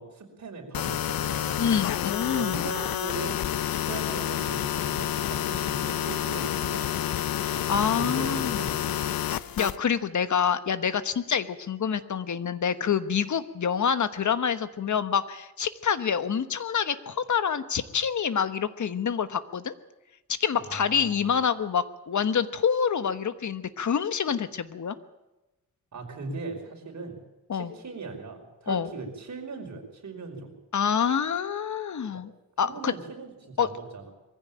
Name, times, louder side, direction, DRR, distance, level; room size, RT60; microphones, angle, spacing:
voice 1, 0.0-1.6 2.3-3.4 3.7-7.2 7.4-9.1 20.6-21.3 25.9-27.2 27.5-30.5 32.1-32.2 32.6-34.1, right 3 dB, 55° right, 2 dB, 5.4 m, -39 dB
sound 1, 0.7-9.8, left 11 dB, 90° left, 0.8 m, -29 dB
voice 2, 1.6-2.7 7.4-8.6 9.3-19.7 20.4-24.9 27.5-27.7 28.7-28.9 30.7-32.3 32.6-32.9 33.6-33.7, left 7 dB, 55° left, 12 dB, 1.3 m, -27 dB
22.5 x 15.5 x 8.8 m, 1.0 s
wide cardioid pair, 120°, 34 cm